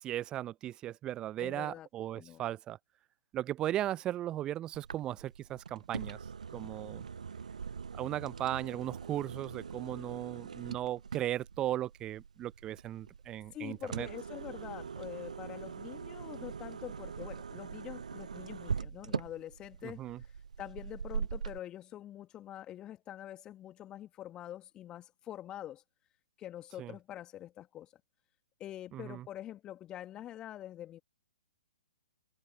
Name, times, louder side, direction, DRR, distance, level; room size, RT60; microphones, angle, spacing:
voice 1, 0.0-2.8 3.3-6.2 6.5-7.1 8.0-14.1 19.8-20.2 26.8-26.9 28.9-29.2, right 13 dB, 20° right, 0.5 m, -37 dB
voice 2, 1.4-1.9 2.1-2.4 13.5-25.8 26.4-27.9 28.6-31.0, left 12 dB, 20° left, 1.4 m, -45 dB
sound 1, 4.7-21.6, right 6 dB, 70° right, 0.6 m, -42 dB
figure-of-eight pair, 120°, 4 cm